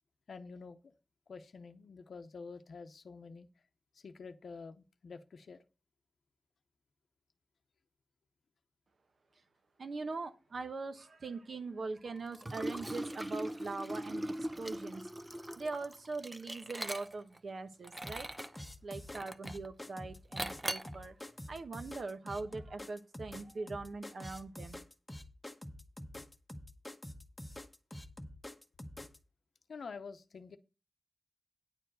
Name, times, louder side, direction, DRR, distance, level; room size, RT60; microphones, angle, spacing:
voice 1, 0.3-0.8 1.3-3.5 3.9-5.6 29.7-30.6, left 4 dB, 85° left, 8 dB, 0.7 m, -48 dB
voice 2, 9.8-15.1 15.6-18.3 18.8-21.2 21.5-24.8, right 3 dB, 65° right, 8 dB, 1.0 m, -42 dB
Liquid, 12.3-17.4 17.8-18.6 19.1-19.7 20.4-21.0, right 1 dB, 15° right, 0.6 m, -40 dB
sound 1, 18.0-29.2, left 1 dB, 15° left, 1.1 m, -47 dB
9.8 x 4.6 x 7.6 m, 0.32 s
wide cardioid pair, 135°, 0 cm